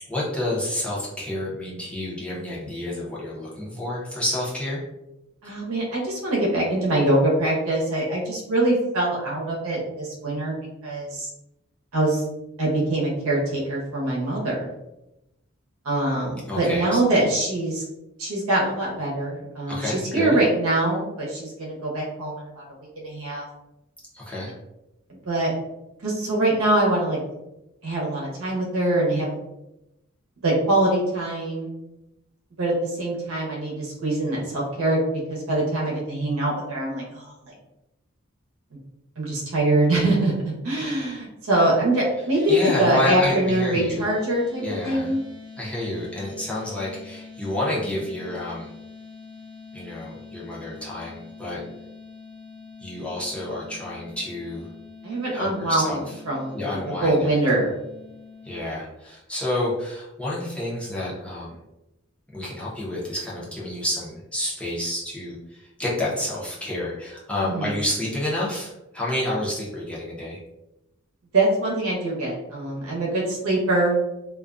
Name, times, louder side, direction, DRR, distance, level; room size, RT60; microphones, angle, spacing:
voice 1, 0.1-4.8 16.5-17.0 19.7-20.4 24.1-24.5 42.5-44.1 44.6-45.1 45.6-48.7 49.7-51.6 52.8-54.7 55.3-56.1 56.5-57.3 58.4-61.6 62.3-70.4, left 1 dB, 5° left, -7 dB, 0.7 m, -29 dB
voice 2, 5.4-10.6 10.8-11.3 11.9-12.2 12.6-14.7 15.8-17.8 18.2-22.6 23.0-23.5 25.2-25.5 26.0-27.2 27.8-29.4 30.4-31.7 32.6-35.0 35.3-37.5 39.2-45.2 55.0-56.6 57.0-57.7 67.4-67.7 71.3-74.0, right 1 dB, 85° right, -4 dB, 0.8 m, -23 dB
sound 1, 42.3-58.6, left 4 dB, 25° right, 0.9 m, -44 dB
2.4 x 2.2 x 2.4 m, 0.92 s
head